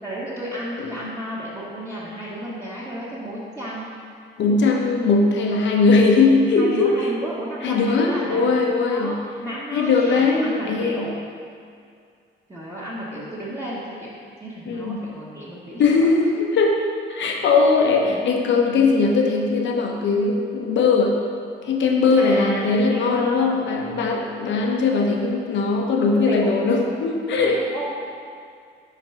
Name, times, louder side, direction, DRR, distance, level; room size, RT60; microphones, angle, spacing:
voice 1, 0.0-3.9 6.6-8.5 8.8-9.2 9.4-11.1 12.5-14.1 14.4-16.2 18.0-18.3 22.2-23.6 25.0-25.4 26.2-27.0 27.4-28.0, equal, 15° right, -10 dB, 1.3 m, -32 dB
voice 2, 4.4-6.9 7.6-9.2 9.7-11.1 14.7-15.0 15.8-16.8 17.1-21.2 21.6-27.6, left 4 dB, 70° left, 1 dB, 0.9 m, -19 dB
4.8 x 4.5 x 5.7 m, 2.2 s
cardioid pair, 90°, 20 cm